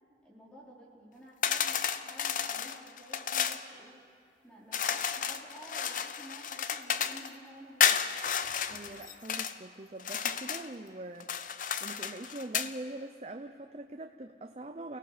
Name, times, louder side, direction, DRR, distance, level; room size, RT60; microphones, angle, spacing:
voice 1, 0.2-4.0 4.4-8.0, equal, 5° left, -5 dB, 4.2 m, -52 dB
sound 1, 1.4-3.6 4.7-7.3 7.8-9.5 10.0-10.7 11.2-12.7, left 8 dB, 50° left, 0.6 m, -32 dB
voice 2, 8.7-11.3 11.8-15.0, right 2 dB, 35° right, 6 dB, 0.6 m, -43 dB
29.5 x 17.5 x 5.0 m, 2.4 s
head